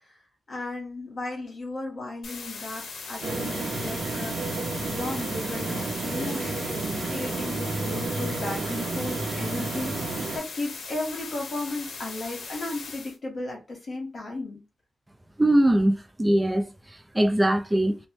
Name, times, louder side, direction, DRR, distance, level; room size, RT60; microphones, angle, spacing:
voice 1, 0.5-14.6, left 2 dB, 50° left, 1.3 m, -35 dB
sound 1, 2.2-13.2, left 4 dB, 85° left, 0.7 m, -39 dB
sound 2, 3.2-10.4, right 3 dB, 70° right, 0.7 m, -31 dB
voice 2, 15.4-16.7 17.1-18.0, right 1 dB, 15° right, 0.4 m, -21 dB
3.1 x 2.1 x 3.0 m
wide cardioid pair, 125°, 0 cm